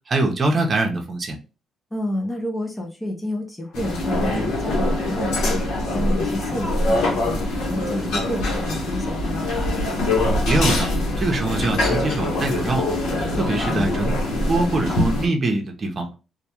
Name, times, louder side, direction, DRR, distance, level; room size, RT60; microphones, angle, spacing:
voice 1, 0.1-1.4 10.4-10.9 11.2-12.8 13.4-16.1, right 2 dB, 40° right, 0.7 m, -23 dB
voice 2, 1.9-9.3, left 1 dB, 10° left, 0.5 m, -30 dB
sound 1, 3.7-15.3, left 1 dB, 85° left, 0.8 m, -23 dB
2.2 x 2.2 x 2.9 m
cardioid pair, 90°, 0 cm